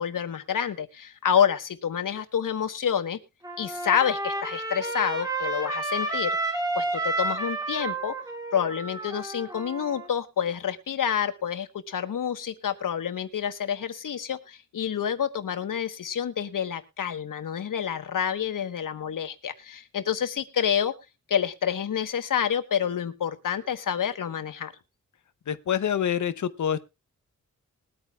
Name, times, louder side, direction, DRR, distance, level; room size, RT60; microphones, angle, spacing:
voice 1, 0.0-3.2 3.6-6.4 6.8-8.1 8.5-20.9 21.3-24.7, left 8 dB, 85° left, 10 dB, 1.2 m, -28 dB
Trumpet, 3.4-10.1, right 2 dB, 10° right, 1.9 m, -31 dB
voice 2, 25.5-26.8, left 9 dB, 65° left, 12 dB, 0.8 m, -26 dB
21.5 x 8.9 x 2.3 m, 0.26 s
wide cardioid pair, 165°, 31 cm